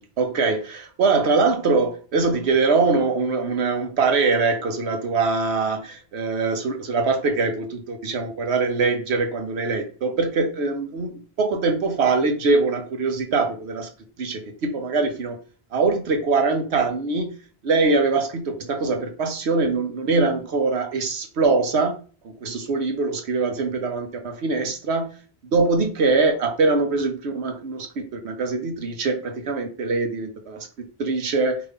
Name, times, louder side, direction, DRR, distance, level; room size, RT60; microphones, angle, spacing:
voice 1, 0.0-13.9 14.2-15.4 15.7-17.3 17.6-22.0 22.4-25.1 25.5-30.7 31.0-31.6, right 3 dB, 80° right, 1.2 m, -23 dB
4.9 x 2.6 x 3.5 m
omnidirectional pair, 1.1 m